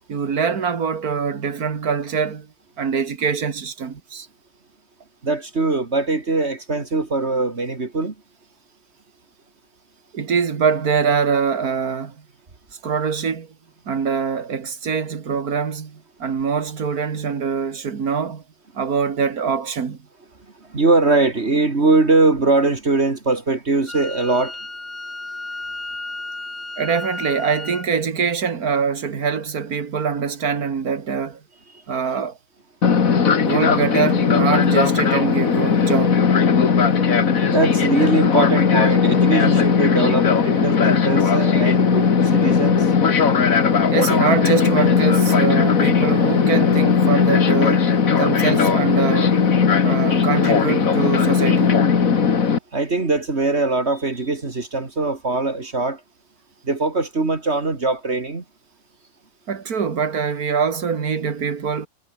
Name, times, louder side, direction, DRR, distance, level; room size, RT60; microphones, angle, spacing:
voice 1, 0.1-2.5 2.8-4.3 10.1-12.2 12.8-13.5 13.9-18.4 18.7-20.0 26.8-31.4 31.9-32.4 33.4-36.2 43.9-49.4 49.8-51.8 59.5-61.9, right 6 dB, 90° right, 2.3 m, -23 dB
voice 2, 5.2-8.2 20.6-24.6 37.5-42.9 52.7-56.0 56.6-58.4, right 3 dB, 45° right, 2.8 m, -21 dB
Wind instrument woodwind instrument, 23.9-27.9, left 2 dB, 30° left, 2.6 m, -33 dB
Fixed-wing aircraft airplane, 32.8-52.6, left 6 dB, 70° left, 2.2 m, -17 dB
omnidirectional pair, 1.5 m